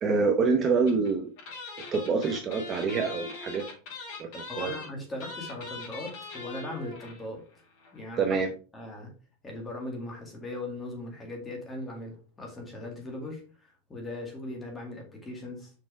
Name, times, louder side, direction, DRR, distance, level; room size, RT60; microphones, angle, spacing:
voice 1, 0.0-1.3 1.9-3.6 4.2-4.3 4.6-4.7 8.2-8.5, right 4 dB, 20° right, 3 dB, 0.8 m, -26 dB
sound 1, 0.9-1.1 1.4-7.3 7.5-7.6 7.8-8.0, left 3 dB, 50° left, 3.1 m, -41 dB
voice 2, 4.5-7.4 7.9-8.4 8.7-9.1 9.4-13.4 13.9-15.7, left 1 dB, 10° left, 1 dB, 2.0 m, -38 dB
6.0 x 4.8 x 4.7 m, 0.37 s
supercardioid pair, 170°, 0 cm